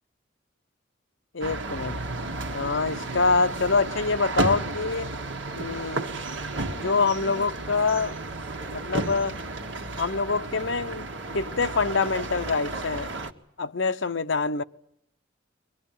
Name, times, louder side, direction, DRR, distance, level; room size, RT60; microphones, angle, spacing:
voice 1, 1.3-2.0 2.5-5.1 5.6-6.1 6.8-8.2 8.7-9.4 10.0-11.1 11.3-13.1 13.6-14.6, left 4 dB, 70° left, 0.9 m, -25 dB
sound 1, 1.4-13.3, right 2 dB, 65° right, 1.8 m, -33 dB
23.5 x 20.0 x 9.2 m
head